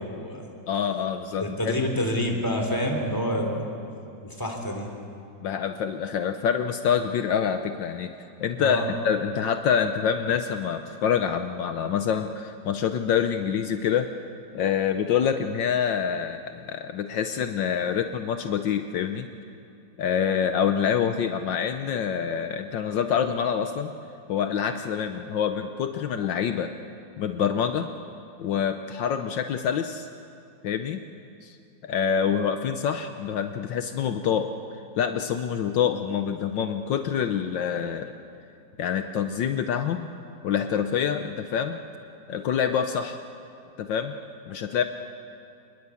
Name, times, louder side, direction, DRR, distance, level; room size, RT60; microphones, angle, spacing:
voice 1, 0.0-0.5 1.4-3.7 4.2-4.9 8.6-8.9, equal, 10° left, 2 dB, 3.3 m, -28 dB
voice 2, 0.7-1.7 5.4-8.1 8.4-14.1 14.5-19.3 20.0-23.9 24.3-26.7 27.2-27.9 28.4-30.1 30.6-31.0 31.4-31.6 31.8-34.5 35.0-38.1 38.8-40.1 40.4-41.8 42.3-43.2 43.8-44.1 44.5-44.8, left 8 dB, 75° left, 7 dB, 1.5 m, -26 dB
27.0 x 20.5 x 8.4 m, 2.6 s
omnidirectional pair, 2.1 m